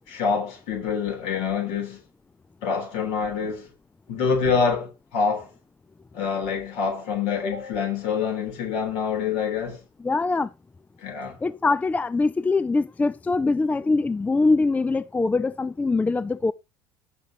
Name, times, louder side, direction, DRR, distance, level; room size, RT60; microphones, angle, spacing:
voice 1, 0.1-2.0 2.6-3.7 4.1-5.5 6.1-9.8 11.0-11.4, left 5 dB, 60° left, 3.5 m, -26 dB
voice 2, 10.0-10.5 11.4-16.5, left 3 dB, 15° left, 0.4 m, -23 dB
15.0 x 6.0 x 2.9 m
hypercardioid pair, 70°, 12 cm